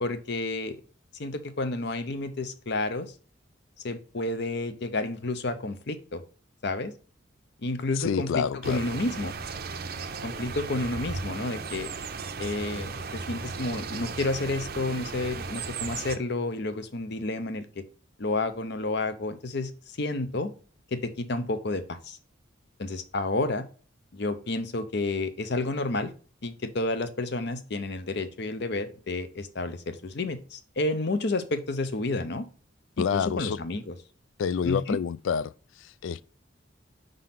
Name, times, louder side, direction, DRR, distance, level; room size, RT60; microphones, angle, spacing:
voice 1, 0.0-0.8 1.2-3.1 3.8-6.2 6.6-6.9 7.6-9.3 10.2-11.9 12.4-17.8 18.2-19.7 20.0-20.5 20.9-22.2 22.8-23.6 24.1-26.1 26.4-32.5 33.0-33.9 34.6-35.0, left 2 dB, 55° left, 0.7 m, -30 dB
voice 2, 8.0-8.8 33.0-33.6 34.4-35.5 35.8-36.2, left 7 dB, 75° left, 0.3 m, -28 dB
sound 1, 8.6-16.2, right 4 dB, 50° right, 0.5 m, -36 dB
5.1 x 3.8 x 5.7 m
head